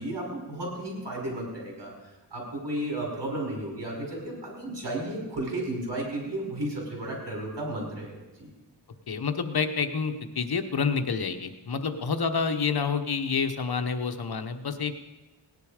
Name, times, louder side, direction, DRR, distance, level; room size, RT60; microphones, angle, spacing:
voice 1, 0.0-1.9 2.3-8.5, right 1 dB, 75° right, -2 dB, 5.5 m, -33 dB
voice 2, 9.1-15.0, left 5 dB, 60° left, 8 dB, 1.1 m, -28 dB
18.0 x 10.5 x 5.0 m, 1.2 s
wide cardioid pair, 95°, 42 cm